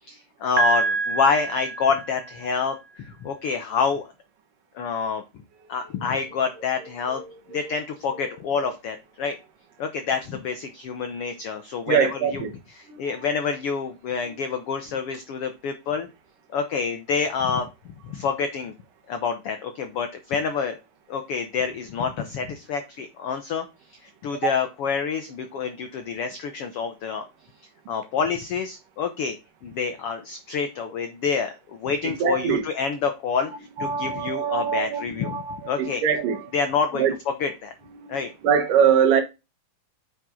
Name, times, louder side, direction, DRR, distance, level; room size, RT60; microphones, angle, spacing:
voice 1, 0.0-4.1 4.7-5.2 5.7-7.2 7.5-9.4 9.8-12.4 12.8-16.1 16.5-17.7 18.0-18.7 19.1-20.8 21.1-27.2 27.9-29.4 29.6-36.0 36.5-37.1 37.4-37.7 38.1-38.3, left 6 dB, 80° left, 1.3 m, -27 dB
Piano, 0.6-2.5, right 4 dB, 50° right, 1.7 m, -26 dB
voice 2, 6.8-7.8 8.1-8.2 11.9-12.5 12.9-13.3 14.2-14.3 24.4-24.5 32.0-32.7 33.8-36.5 36.9-37.1 37.9-39.2, right 7 dB, 75° right, 3.0 m, -24 dB
8.6 x 5.4 x 3.7 m
omnidirectional pair, 3.8 m